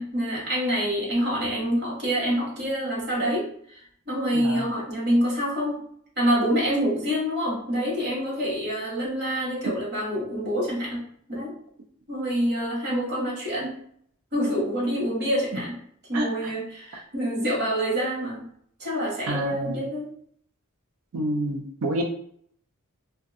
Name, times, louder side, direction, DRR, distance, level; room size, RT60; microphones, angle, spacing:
voice 1, 0.0-5.8 6.2-11.0 11.3-11.5 12.1-13.8 14.3-15.7 16.1-18.5 18.8-20.1, equal, 50° right, -4 dB, 1.0 m, -26 dB
voice 2, 4.3-4.7 16.1-16.5 19.3-19.8 21.1-22.0, right 1 dB, 70° right, 2 dB, 0.4 m, -28 dB
2.5 x 2.2 x 2.4 m, 0.65 s
head